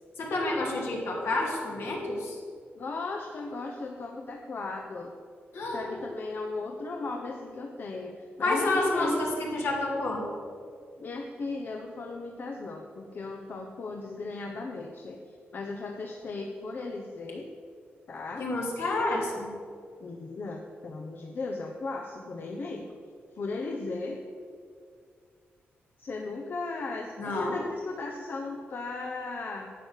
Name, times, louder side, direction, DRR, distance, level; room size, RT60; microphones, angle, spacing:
voice 1, 0.2-2.4 5.5-6.0 8.4-10.3 18.4-19.5 27.2-27.6, left 2 dB, 70° left, -1 dB, 2.7 m, -29 dB
voice 2, 2.7-5.1 5.7-9.3 11.0-17.5 18.1-18.5 20.0-22.9 23.3-24.2 26.0-29.7, left 3 dB, 50° left, 1 dB, 0.9 m, -36 dB
11.0 x 8.4 x 6.5 m, 2.2 s
wide cardioid pair, 140°, 4 cm